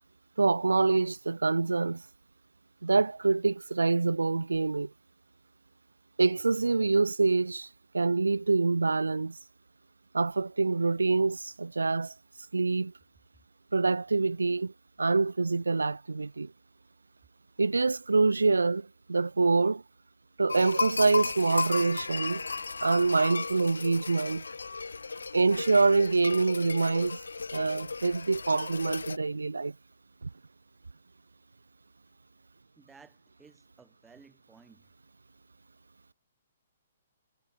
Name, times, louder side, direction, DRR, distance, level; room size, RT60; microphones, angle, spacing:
voice 1, 0.4-2.0 2.8-4.9 6.2-7.7 7.9-9.4 10.1-12.1 12.5-12.9 13.7-14.7 15.0-16.5 17.6-19.8 20.4-22.4 22.8-24.4 25.3-27.2 27.5-29.7 30.2-30.3, right 3 dB, 70° right, 0.8 m, -26 dB
sound 1, 20.5-29.2, left 4 dB, 70° left, 0.9 m, -35 dB
voice 2, 32.8-34.9, right 5 dB, 10° right, 7.6 m, -57 dB
figure-of-eight pair, 125°, 0 cm